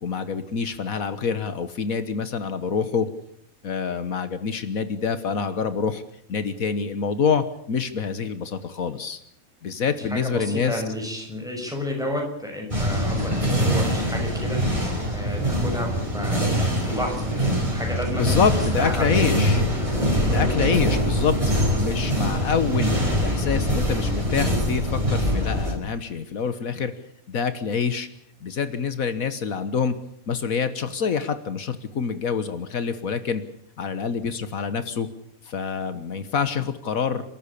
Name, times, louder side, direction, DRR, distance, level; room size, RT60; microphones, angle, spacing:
voice 1, 0.0-3.1 3.6-6.0 6.3-9.2 9.6-10.8 18.1-19.7 20.3-21.4 21.8-26.9 27.3-28.1 28.4-29.9 30.3-33.4 33.8-35.1 35.4-37.3, left 6 dB, 75° left, 11 dB, 1.7 m, -26 dB
voice 2, 10.1-14.6 15.1-19.4 20.1-20.5, equal, ahead, 2 dB, 6.2 m, -32 dB
sound 1, 12.7-25.7, equal, 20° right, 5.4 m, -23 dB
29.0 x 13.0 x 8.6 m, 0.69 s
omnidirectional pair, 1.5 m